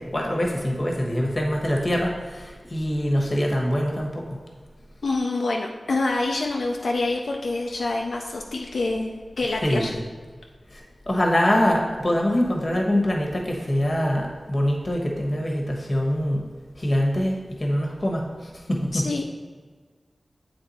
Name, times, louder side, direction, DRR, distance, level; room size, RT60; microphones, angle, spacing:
voice 1, 0.0-4.4 9.6-10.0 10.7-10.8 11.1-16.4 16.8-18.3 18.7-19.1, equal, 35° left, -1 dB, 1.1 m, -24 dB
voice 2, 5.0-9.9 18.9-19.2, left 2 dB, 80° left, 0 dB, 0.4 m, -26 dB
7.7 x 3.4 x 4.1 m, 1.5 s
wide cardioid pair, 85°, 0 cm